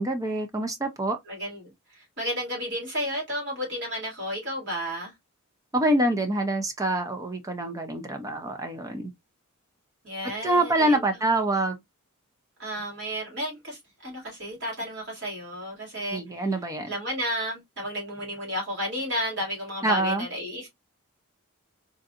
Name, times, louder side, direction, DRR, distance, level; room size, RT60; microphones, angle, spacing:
voice 1, 0.0-1.2 5.7-9.1 10.4-11.8 16.1-16.9 19.8-20.3, right 1 dB, 15° right, 0.4 m, -26 dB
voice 2, 1.3-5.1 10.0-11.0 12.6-16.5 16.8-20.7, equal, 50° right, 2.3 m, -32 dB
3.8 x 2.6 x 2.4 m
head